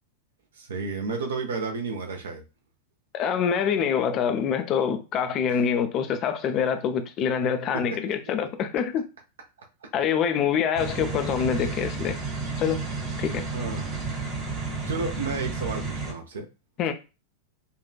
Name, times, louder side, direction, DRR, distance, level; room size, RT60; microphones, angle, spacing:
voice 1, 0.6-2.4 5.5-5.6 9.8-9.9 13.5-14.0 14.8-16.5, right 4 dB, 65° right, 0.8 m, -32 dB
voice 2, 3.1-9.0 9.9-12.2 12.6-12.8 13.2-13.4 16.8-16.9, left 7 dB, 35° left, 0.5 m, -25 dB
sound 1, 10.8-16.1, right 4 dB, 35° right, 1.3 m, -32 dB
5.4 x 2.4 x 2.2 m
figure-of-eight pair, 90°, 0 cm